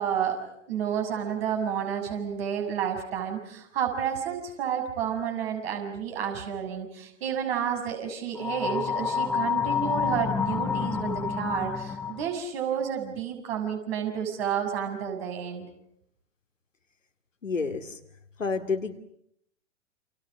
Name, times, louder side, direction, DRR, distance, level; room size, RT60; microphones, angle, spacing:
voice 1, 0.0-15.7, right 8 dB, 50° right, 4 dB, 6.7 m, -30 dB
sound 1, 8.4-12.3, left 6 dB, 5° left, 1.2 m, -28 dB
voice 2, 17.4-18.0 18.4-19.0, left 4 dB, 80° left, 6 dB, 2.5 m, -29 dB
29.5 x 27.5 x 6.4 m, 0.72 s
figure-of-eight pair, 105°, 38 cm